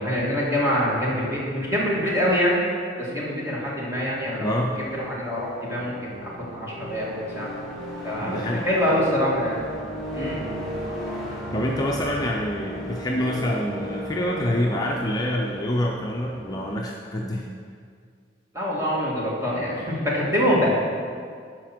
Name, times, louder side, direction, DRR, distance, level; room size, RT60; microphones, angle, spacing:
voice 1, 0.0-2.6 3.0-4.6 4.9-7.5 8.0-8.3 8.6-9.6 10.1-10.4 18.5-20.7, equal, 15° right, -5 dB, 2.0 m, -25 dB
sound 1, 4.1-16.8, equal, ahead, 2.3 m, -36 dB
voice 2, 4.4-4.8 8.2-8.7 11.5-17.5, left 1 dB, 20° left, -1 dB, 0.6 m, -26 dB
10.5 x 4.9 x 6.0 m, 2.2 s
head